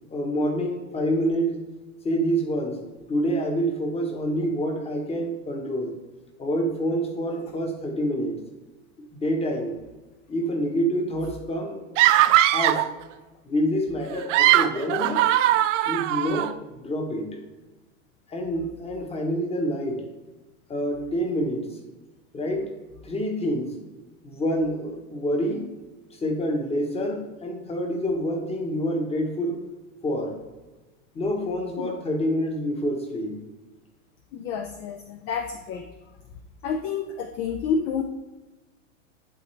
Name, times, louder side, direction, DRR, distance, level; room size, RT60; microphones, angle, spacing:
voice 1, 0.1-1.6 2.0-2.8 3.1-5.9 6.4-8.4 9.2-9.8 10.3-11.8 12.5-12.9 13.4-15.3 15.8-17.4 18.3-20.1 20.7-21.8 22.3-22.7 23.0-23.7 24.2-25.7 26.1-29.6 30.0-30.4 31.1-33.4, equal, 15° left, 4 dB, 1.1 m, -27 dB
sound 1, 12.0-12.9 14.1-16.5, right 14 dB, 65° right, 0.5 m, -20 dB
voice 2, 34.3-35.9 36.6-38.0, left 6 dB, 30° left, 7 dB, 0.4 m, -29 dB
11.0 x 3.8 x 3.3 m, 1.1 s
hypercardioid pair, 120°, 39 cm